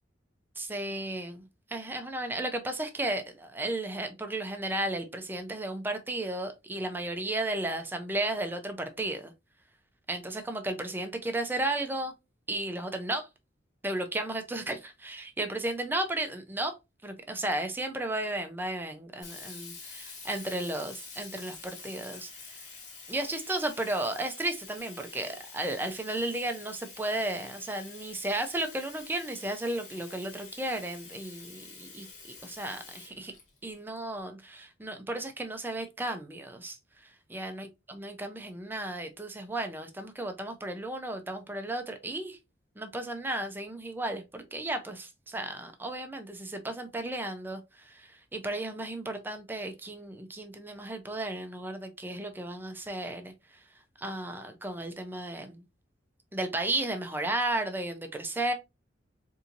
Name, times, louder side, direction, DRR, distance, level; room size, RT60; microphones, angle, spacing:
voice 1, 0.6-9.3 10.1-12.1 12.5-13.3 13.8-16.8 17.0-22.6 23.1-33.3 33.6-36.8 37.0-42.4 42.8-53.6 54.0-55.6 56.3-58.5, right 1 dB, 10° right, 0.5 m, -34 dB
Sink (filling or washing), 19.2-34.0, left 4 dB, 40° left, 1.3 m, -47 dB
4.2 x 2.7 x 2.5 m
head